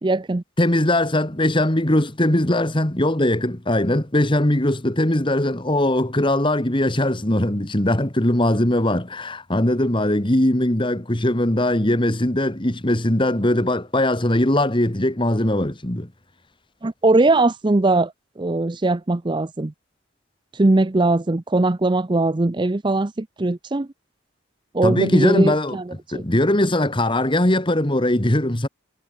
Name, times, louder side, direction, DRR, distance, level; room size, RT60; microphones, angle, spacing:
voice 1, 0.0-0.4 16.8-19.7 20.5-23.9 24.7-25.8 26.1-26.2, right 2 dB, 25° right, 0.5 m, -20 dB
voice 2, 0.6-16.1 24.8-28.7, left 1 dB, 25° left, 1.9 m, -20 dB
head